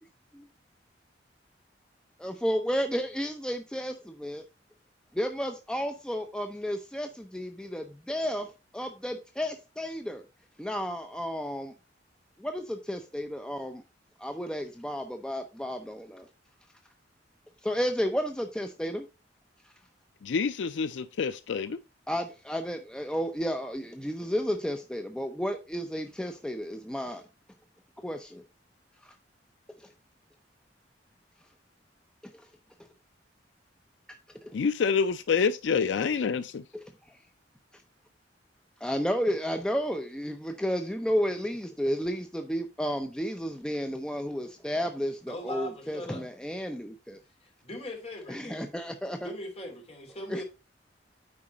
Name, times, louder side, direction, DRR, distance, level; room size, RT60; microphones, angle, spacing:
voice 1, 2.2-4.5 5.1-8.5 8.7-10.3 10.6-11.7 12.4-13.8 14.2-16.3 17.6-19.1 22.1-27.2 28.0-28.4 29.0-29.1 29.8-29.9 34.4-34.5 36.7-36.8 37.7-37.8 38.8-47.2 48.3-49.3 50.3-50.4, equal, 5° left, 0.6 m, -32 dB
voice 2, 20.2-21.8 34.5-36.6, left 5 dB, 75° left, 0.4 m, -27 dB
voice 3, 45.3-46.2 47.4-48.7 49.2-50.4, left 1 dB, 35° left, 2.9 m, -40 dB
8.7 x 4.9 x 4.0 m
head